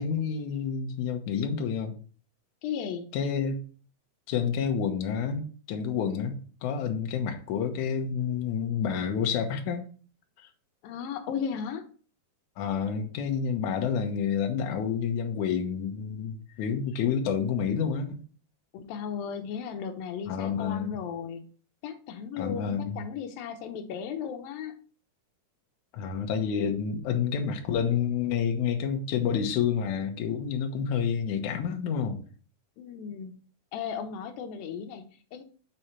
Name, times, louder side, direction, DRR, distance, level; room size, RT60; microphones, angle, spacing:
voice 1, 0.0-2.0 3.1-3.6 4.3-6.4 6.6-9.9 12.6-18.2 20.3-20.9 22.4-23.0 25.9-32.2, left 7 dB, 70° left, 4 dB, 2.2 m, -29 dB
voice 2, 2.6-3.1 10.8-11.8 18.7-21.4 21.8-24.8 32.8-33.4 33.7-35.4, left 7 dB, 90° left, 6 dB, 2.6 m, -35 dB
8.0 x 4.3 x 4.4 m, 0.40 s
omnidirectional pair, 4.1 m